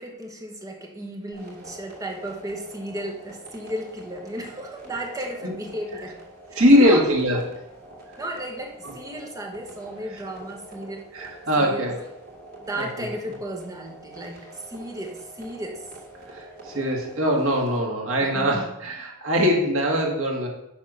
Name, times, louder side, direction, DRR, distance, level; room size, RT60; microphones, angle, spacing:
voice 1, 0.0-6.2 6.5-7.0 7.3-7.4 8.2-11.1 11.6-11.9 12.6-15.9 18.2-18.8, right 1 dB, 15° right, 1 dB, 1.2 m, -34 dB
sound 1, 1.3-17.8, right 2 dB, 45° right, 2.5 m, -45 dB
voice 2, 6.5-7.4 8.8-8.9 11.1-12.0 12.8-13.1 16.3-20.5, equal, 65° right, 0 dB, 2.0 m, -22 dB
10.0 x 3.7 x 6.2 m, 0.87 s
head